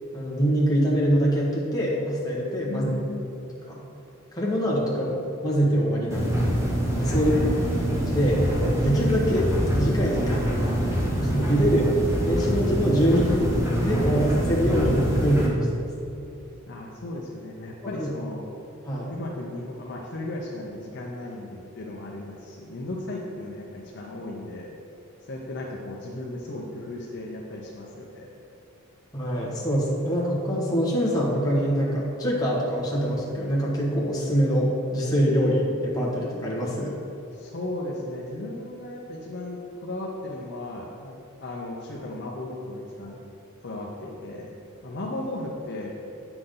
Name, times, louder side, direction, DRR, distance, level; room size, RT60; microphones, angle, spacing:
voice 1, 0.1-2.9 3.7-3.8 4.3-6.5 7.0-7.3 7.9-10.6 11.2-11.9 12.2-15.8 18.0-18.1 18.9-19.1 29.1-37.0, equal, 20° left, -5 dB, 1.5 m, -24 dB
voice 2, 2.6-3.3 7.1-7.6 16.7-18.4 19.1-24.7 25.2-28.3 37.3-41.1 41.4-43.2 43.6-44.5 44.8-46.0, left 1 dB, 55° left, -2 dB, 0.7 m, -35 dB
sound 1, 6.1-15.5, equal, 15° right, 1.3 m, -25 dB
8.8 x 6.0 x 3.9 m, 2.8 s
head